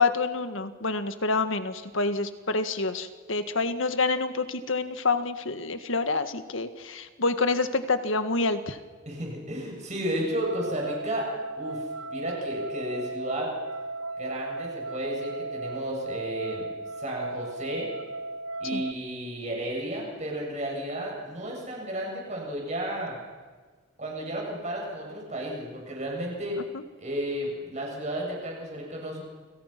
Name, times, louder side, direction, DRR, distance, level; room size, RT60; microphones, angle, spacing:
voice 1, 0.0-8.8 18.7-18.8 26.6-26.8, left 3 dB, 70° left, 9 dB, 1.7 m, -27 dB
voice 2, 9.1-11.3 11.6-13.5 14.2-16.7 17.0-17.9 18.6-23.1 24.0-26.6 27.0-29.2, right 1 dB, 35° right, -1 dB, 7.9 m, -33 dB
sound 1, 10.3-18.9, right 2 dB, 80° right, 0.8 m, -36 dB
29.5 x 27.0 x 6.0 m, 1.5 s
head